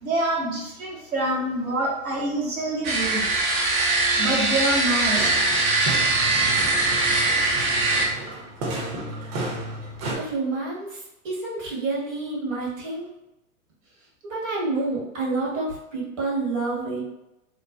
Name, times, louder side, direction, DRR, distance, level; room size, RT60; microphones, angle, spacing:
voice 1, 0.0-3.8 4.2-5.4, right 1 dB, 75° right, -3 dB, 1.0 m, -26 dB
sound 1, 2.8-8.1, right 3 dB, 25° right, 0.3 m, -22 dB
sound 2, 5.1-10.2, right 1 dB, 45° right, 0.8 m, -32 dB
voice 2, 10.2-13.1 14.3-17.0, right 3 dB, 60° right, -4 dB, 1.3 m, -28 dB
3.0 x 2.1 x 2.4 m, 0.90 s
figure-of-eight pair, 95°, 42 cm